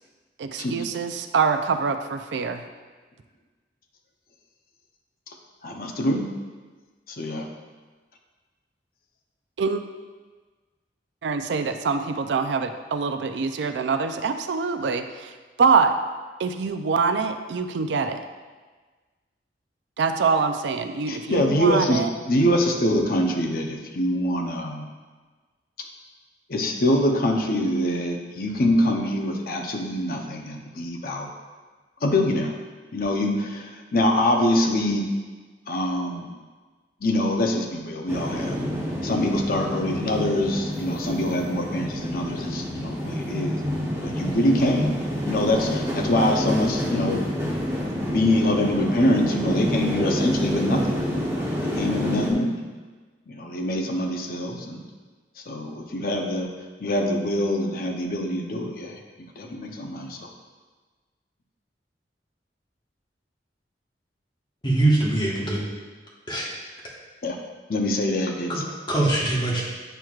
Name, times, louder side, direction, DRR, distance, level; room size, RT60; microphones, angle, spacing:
voice 1, 0.4-2.6 9.6-9.8 11.2-15.3 15.6-16.0 16.4-18.2 20.0-22.1, right 5 dB, 85° right, 8 dB, 0.4 m, -24 dB
voice 2, 5.6-6.3 7.2-7.5 21.1-24.9 26.5-31.3 32.0-32.5 32.9-35.1 35.7-36.3 37.0-38.6 39.0-43.6 44.0-44.9 45.2-47.2 48.0-50.9 51.3-52.6 53.3-54.8 55.5-56.5 56.8-59.0 59.4-60.3 67.2-67.4 67.7-68.6, left 1 dB, 55° left, 2 dB, 0.7 m, -24 dB
sound 1, 38.1-52.3, equal, 15° right, 1.0 m, -28 dB
voice 3, 64.6-65.6 66.3-66.5 68.5-68.6 68.9-69.6, right 2 dB, 25° left, -5 dB, 1.3 m, -22 dB
8.9 x 4.5 x 2.4 m, 1.4 s
head